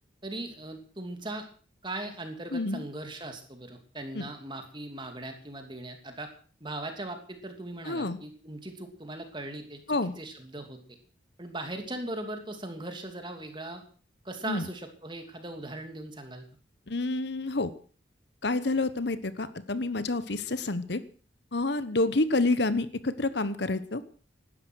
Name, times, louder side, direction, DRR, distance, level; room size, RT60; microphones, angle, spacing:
voice 1, 0.2-1.5 1.8-6.3 6.6-11.0 11.4-13.8 14.2-16.4, right 1 dB, 25° right, 6 dB, 2.9 m, -39 dB
voice 2, 2.5-2.8 4.1-4.2 7.9-8.2 9.9-10.1 14.5-14.6 16.9-17.7 18.4-21.0 21.5-24.0, left 2 dB, 60° left, 14 dB, 1.1 m, -28 dB
17.0 x 12.5 x 6.3 m, 0.42 s
head